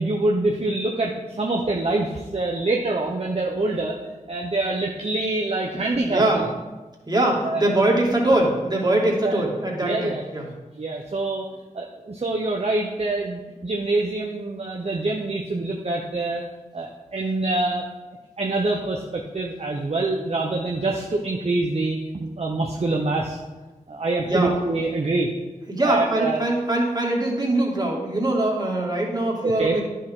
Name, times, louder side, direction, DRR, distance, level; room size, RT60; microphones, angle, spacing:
voice 1, 0.0-3.9 4.3-6.4 7.4-7.7 9.2-9.4 9.8-10.3 10.8-11.5 11.7-16.4 16.7-17.9 18.4-23.4 23.9-25.3 25.8-26.4 29.4-29.8, right 2 dB, 45° right, -1 dB, 1.0 m, -25 dB
voice 2, 5.7-6.5 7.1-10.5 24.3-24.5 25.7-29.8, right 1 dB, 30° right, -2 dB, 2.5 m, -22 dB
10.5 x 6.5 x 3.8 m, 1.2 s
cardioid pair, 40°, 14 cm